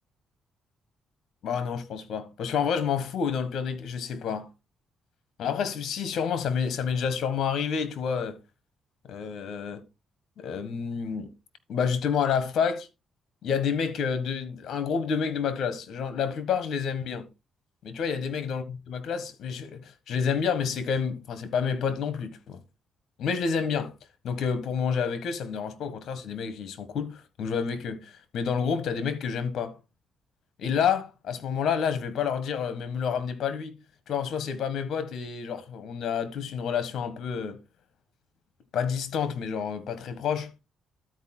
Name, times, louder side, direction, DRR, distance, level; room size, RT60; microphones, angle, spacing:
voice 1, 1.4-4.5 5.4-8.4 9.0-9.8 10.4-11.3 11.7-12.9 13.4-17.3 17.8-22.6 23.2-23.9 24.2-29.8 30.6-33.8 34.1-37.6 38.7-40.5, left 6 dB, 70° left, 1.5 m, -29 dB
12.5 x 4.6 x 4.3 m
cardioid pair, 90°, 0 cm